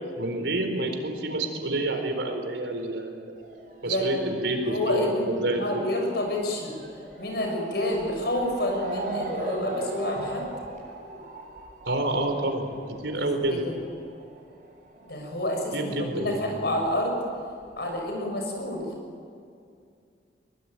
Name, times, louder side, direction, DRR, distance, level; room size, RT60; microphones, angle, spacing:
voice 1, 0.2-3.4 3.8-5.8 11.9-12.7 13.0-13.6 15.7-16.6, right 2 dB, 90° right, 5 dB, 4.3 m, -28 dB
Motor vehicle (road) / Siren, 3.4-16.4 16.6-17.8 18.5-18.6 18.8-18.9, right 1 dB, 50° right, 7.8 m, -39 dB
voice 2, 3.8-4.2 4.7-6.8 7.2-10.4 13.1-13.2 13.5-13.8 15.1-17.2 17.8-18.8, left 1 dB, 65° left, 2 dB, 7.0 m, -29 dB
23.0 x 21.0 x 9.2 m, 2.4 s
head